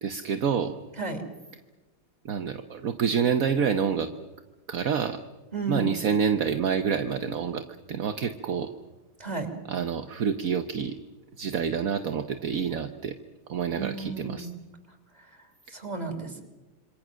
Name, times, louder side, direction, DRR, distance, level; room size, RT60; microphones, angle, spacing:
voice 1, 0.0-0.8 2.2-4.1 4.7-5.2 5.7-8.7 9.7-11.0 11.4-13.1 13.5-14.5, right 7 dB, 55° right, 7 dB, 1.1 m, -27 dB
voice 2, 5.5-6.0 9.2-9.5 13.7-14.5 15.7-16.4, right 3 dB, 20° right, 3 dB, 3.2 m, -33 dB
27.0 x 24.0 x 6.3 m, 1.1 s
omnidirectional pair, 2.3 m